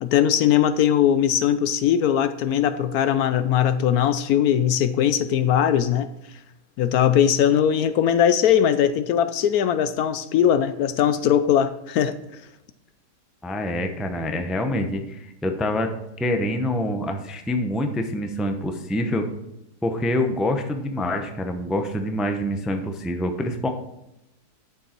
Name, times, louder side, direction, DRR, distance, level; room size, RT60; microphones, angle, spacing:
voice 1, 0.0-6.1 6.8-12.1, left 9 dB, 70° left, 12 dB, 1.0 m, -20 dB
voice 2, 13.4-15.9 16.2-19.3 19.8-23.7, left 1 dB, ahead, 5 dB, 0.5 m, -26 dB
11.0 x 7.0 x 4.5 m, 0.89 s
omnidirectional pair, 1.8 m